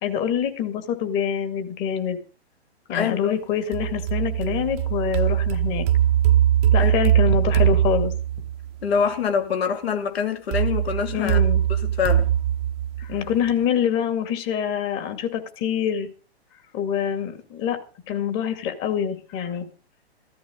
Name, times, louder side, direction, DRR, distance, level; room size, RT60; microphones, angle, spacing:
voice 1, 0.0-2.2 2.9-5.9 6.7-8.1 11.1-11.6 13.0-16.1 16.7-17.8 18.1-19.7, left 8 dB, 35° left, 2.4 m, -25 dB
voice 2, 2.9-3.4 6.7-6.9 8.8-11.4 11.8-12.3, left 6 dB, 65° left, 2.9 m, -25 dB
sound 1, 3.7-8.7 10.5-13.5, right 11 dB, 35° right, 0.9 m, -21 dB
14.5 x 14.0 x 4.0 m
hypercardioid pair, 125°, 33 cm